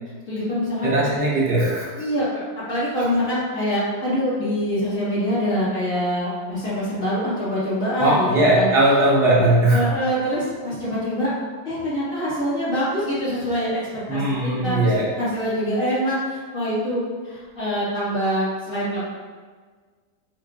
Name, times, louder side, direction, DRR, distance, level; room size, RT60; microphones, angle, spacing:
voice 1, 0.3-0.9 2.0-2.4 2.7-8.7 9.7-11.3 11.6-13.8 14.1-14.9 15.2-19.0, equal, 40° left, -9 dB, 2.6 m, -24 dB
voice 2, 0.8-1.9 8.0-9.9 14.1-15.1, right 1 dB, 55° right, -5 dB, 1.7 m, -19 dB
9.0 x 5.4 x 2.5 m, 1.5 s
omnidirectional pair, 2.1 m